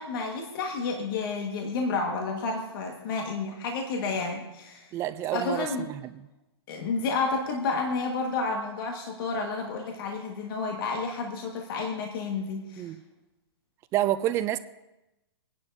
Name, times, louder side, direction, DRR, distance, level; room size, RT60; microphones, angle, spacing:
voice 1, 0.0-4.9 5.3-5.9 6.7-12.9, left 4 dB, 50° left, 1 dB, 1.7 m, -30 dB
voice 2, 4.9-6.3 12.8-13.0 13.9-14.6, right 13 dB, 20° right, 13 dB, 0.3 m, -29 dB
28.5 x 10.5 x 2.7 m, 0.98 s
hypercardioid pair, 150°, 14 cm